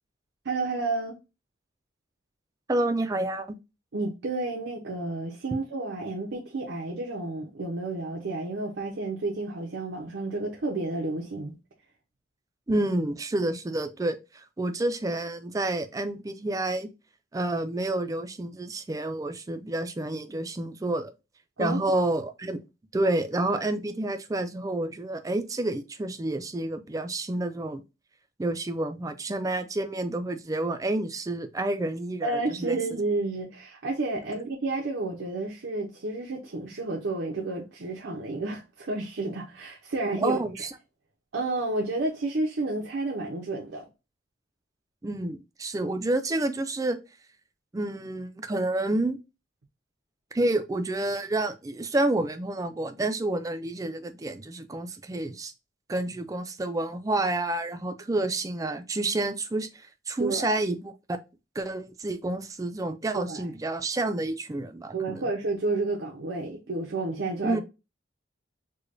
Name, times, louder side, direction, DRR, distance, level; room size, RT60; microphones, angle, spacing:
voice 1, 0.4-1.2 3.9-11.5 21.6-22.0 32.2-40.4 41.3-43.8 60.2-60.5 63.1-63.4 64.9-67.6, right 2 dB, 85° right, 0.7 m, -31 dB
voice 2, 2.7-3.5 12.7-16.9 17.3-21.1 21.6-22.6 22.9-27.8 28.4-32.8 40.2-40.7 45.0-47.0 47.7-49.2 50.3-55.5 55.9-59.7 60.1-61.2 61.6-65.3 67.4-67.6, right 2 dB, 20° right, 0.3 m, -29 dB
4.8 x 2.2 x 2.5 m
head